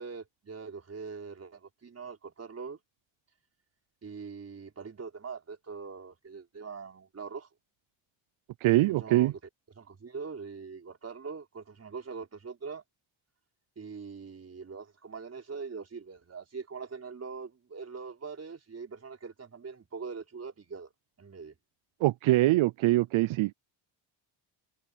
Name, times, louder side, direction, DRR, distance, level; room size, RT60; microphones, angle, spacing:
voice 1, 0.0-2.8 4.0-7.5 8.8-9.4 9.8-12.8 13.7-20.9 21.2-21.5, right 5 dB, 30° right, 5.1 m, -42 dB
voice 2, 8.6-9.3 22.0-23.5, right 17 dB, 80° right, 0.6 m, -23 dB
wide cardioid pair, 160°, 47 cm